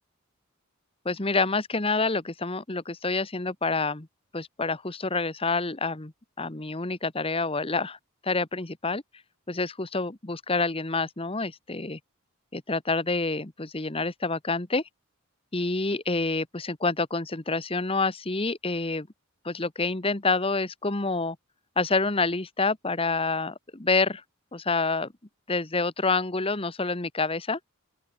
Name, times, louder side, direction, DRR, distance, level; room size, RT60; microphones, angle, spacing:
voice 1, 1.0-4.1 4.3-6.1 6.4-8.0 8.2-9.0 9.5-12.0 12.5-14.8 15.5-19.1 19.4-21.4 21.8-24.2 24.5-25.1 25.5-27.6, left 3 dB, 25° left, 1.3 m, -27 dB
open air
head